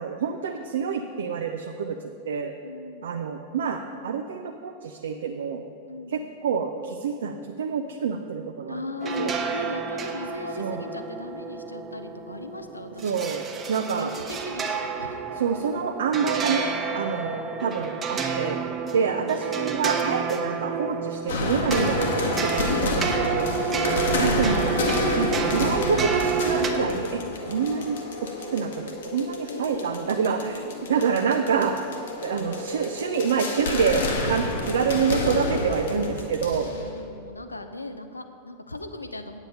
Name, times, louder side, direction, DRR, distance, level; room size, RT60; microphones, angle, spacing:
voice 1, 0.0-2.0 2.3-2.5 3.0-5.6 6.1-8.8 9.2-9.3 10.6-10.8 13.0-13.4 13.7-14.1 15.4-16.7 16.9-18.6 18.9-23.5 24.2-24.8 25.1-28.0 28.5-31.8 32.2-36.7, right 6 dB, 60° right, 4 dB, 0.5 m, -27 dB
voice 2, 2.6-3.3 5.9-6.4 8.7-13.4 14.0-15.2 22.7-24.4 27.7-27.9 29.5-31.6 36.6-39.4, left 2 dB, 80° left, 8 dB, 0.6 m, -38 dB
sound 1, 9.0-26.7, right 6 dB, 20° right, 1.0 m, -30 dB
sound 2, 21.3-37.0, left 2 dB, 65° left, 1.4 m, -29 dB
9.1 x 8.2 x 5.5 m, 2.4 s
figure-of-eight pair, 90°, 0 cm